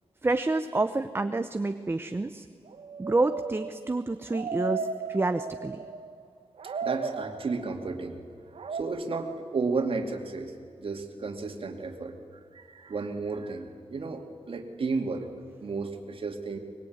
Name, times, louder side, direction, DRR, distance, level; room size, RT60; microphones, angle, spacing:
voice 1, 0.2-2.4 3.0-5.8, right 2 dB, 20° right, 9 dB, 0.8 m, -28 dB
sound 1, 2.7-6.3 6.6-7.9 8.6-8.8, right 5 dB, 80° right, 1.3 m, -35 dB
voice 2, 6.8-8.2 8.7-10.5 10.8-12.1 12.5-15.3 15.6-16.6, right 4 dB, 60° right, 5 dB, 2.5 m, -33 dB
24.0 x 21.5 x 9.5 m, 2.4 s
wide cardioid pair, 130°, 10 cm